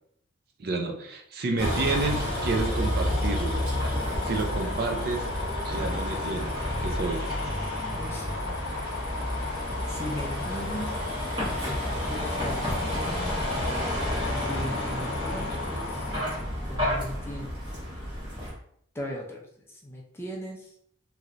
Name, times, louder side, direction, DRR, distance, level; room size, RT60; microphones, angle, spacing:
voice 1, 0.6-3.6 4.2-5.3 5.6-6.5 6.8-7.2, right 3 dB, 50° right, 3 dB, 0.5 m, -30 dB
sound 1, 1.6-16.4, left 4 dB, 65° left, 0.4 m, -36 dB
Vehicle, 1.6-18.5, equal, 25° right, 1.2 m, -30 dB
voice 2, 7.9-8.3 9.9-10.9 12.1-13.1 14.3-16.1 16.7-17.6 18.9-20.7, equal, 10° left, -1 dB, 0.5 m, -38 dB
3.1 x 2.8 x 2.5 m, 0.68 s
head